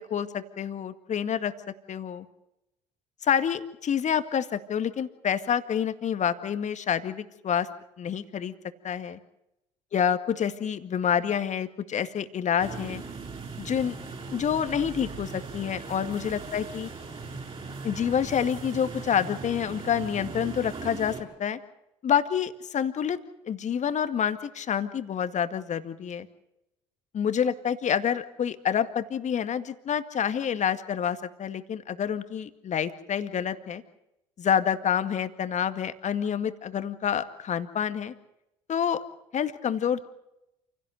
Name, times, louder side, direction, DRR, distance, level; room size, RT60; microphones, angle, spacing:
voice 1, 0.0-1.5 1.9-2.3 3.2-7.7 8.0-8.5 8.8-9.2 9.9-13.0 13.6-14.0 14.3-16.9 17.8-21.6 22.0-23.2 23.5-26.3 27.1-33.8 34.4-38.1 38.7-39.0 39.3-40.1, left 8 dB, 45° left, 11 dB, 2.0 m, -28 dB
sound 1, 12.6-21.2, right 4 dB, 35° right, 7.7 m, -39 dB
28.5 x 17.0 x 7.8 m, 0.87 s
hypercardioid pair, 55°, 17 cm